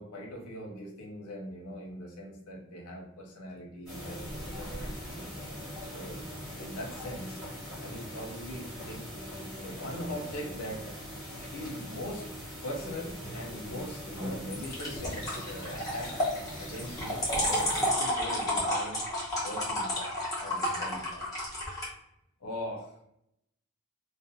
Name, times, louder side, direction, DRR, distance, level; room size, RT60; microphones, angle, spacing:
voice 1, 0.0-6.2 6.6-7.4 7.8-9.1 9.6-10.9 11.5-16.2 16.6-19.0 19.4-20.1 20.4-21.3 22.4-23.0, left 1 dB, 90° left, -1 dB, 0.6 m, -41 dB
sound 1, 3.9-17.9, equal, ahead, 1.2 m, -41 dB
sound 2, 4.3-4.9 14.5-21.9, left 1 dB, 15° left, 0.7 m, -31 dB
2.4 x 2.1 x 2.6 m, 0.78 s
head